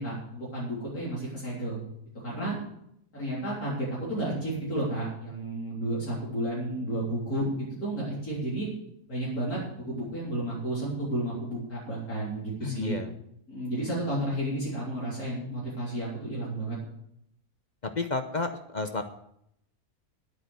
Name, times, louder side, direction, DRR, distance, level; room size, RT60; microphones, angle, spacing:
voice 1, 0.0-1.8 2.2-2.6 3.1-8.7 9.1-13.0 13.5-16.8, right 1 dB, 65° left, -6 dB, 4.0 m, -32 dB
voice 2, 12.6-13.1 17.8-19.0, left 3 dB, 45° left, 7 dB, 0.6 m, -31 dB
9.7 x 8.7 x 7.9 m, 0.75 s
omnidirectional pair, 1.7 m